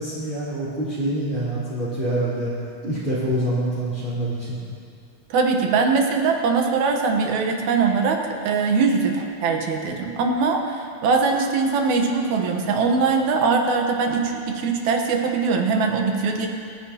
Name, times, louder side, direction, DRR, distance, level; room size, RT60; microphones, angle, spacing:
voice 1, 0.0-2.5 2.8-4.6, right 1 dB, 15° right, -13 dB, 3.1 m, -26 dB
voice 2, 5.3-16.5, right 4 dB, 65° right, 2 dB, 2.1 m, -21 dB
27.0 x 10.5 x 2.9 m, 2.4 s
omnidirectional pair, 4.3 m